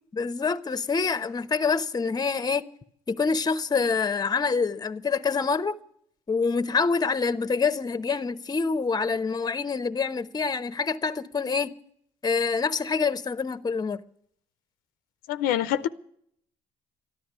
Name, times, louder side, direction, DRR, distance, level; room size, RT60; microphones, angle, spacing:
voice 1, 0.1-2.6 3.1-5.8 6.3-11.7 12.2-14.0, left 5 dB, 30° left, 1.0 m, -26 dB
voice 2, 15.3-15.9, left 11 dB, 85° left, 0.7 m, -25 dB
13.5 x 11.0 x 9.5 m
supercardioid pair, 80°, 14 cm